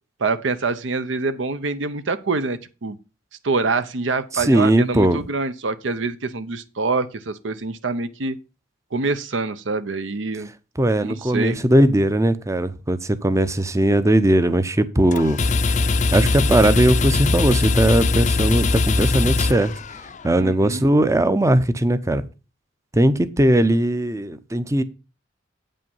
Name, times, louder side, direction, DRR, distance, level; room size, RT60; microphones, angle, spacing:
voice 1, 0.2-3.0 3.4-8.4 8.9-10.5 11.0-11.7 20.4-20.8, right 3 dB, 70° right, 0.7 m, -25 dB
voice 2, 4.3-5.2 10.8-15.4 16.1-19.7 20.2-22.2 22.9-24.8, right 1 dB, 15° right, 0.6 m, -19 dB
sound 1, 15.1-20.3, left 3 dB, 40° left, 0.5 m, -21 dB
8.5 x 5.4 x 5.4 m
head